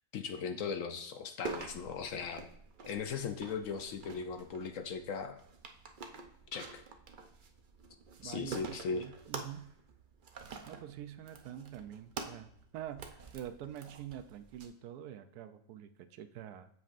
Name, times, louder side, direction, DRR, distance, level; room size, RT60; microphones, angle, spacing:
voice 1, 0.1-2.5 2.8-5.4 6.5-6.8 8.2-9.1, left 5 dB, 65° left, 8 dB, 0.9 m, -38 dB
sound 1, 1.4-14.7, right 4 dB, 60° right, 0.5 m, -48 dB
voice 2, 8.2-9.7 10.7-16.7, right 10 dB, 80° right, 10 dB, 1.1 m, -46 dB
8.2 x 7.2 x 2.5 m, 0.69 s
omnidirectional pair, 1.7 m